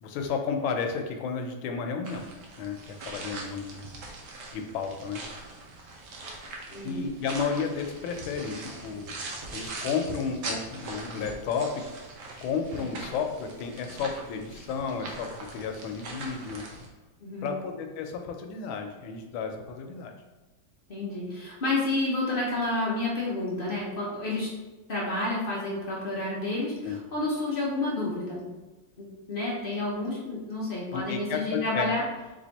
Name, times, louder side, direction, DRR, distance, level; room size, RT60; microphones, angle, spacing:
voice 1, 0.0-2.2 2.6-2.8 3.1-3.9 4.5-5.2 6.8-9.1 9.5-11.8 12.4-16.6 17.4-20.1 26.8-27.0 30.9-31.9, left 5 dB, 90° left, 5 dB, 1.4 m, -32 dB
sound 1, 2.0-16.9, right 2 dB, 65° right, 1.2 m, -41 dB
voice 2, 6.7-7.1 17.2-17.5 20.9-24.5 24.9-28.6 29.3-32.0, left 2 dB, 45° left, -4 dB, 0.7 m, -30 dB
3.4 x 3.4 x 4.0 m, 1.1 s
omnidirectional pair, 2.1 m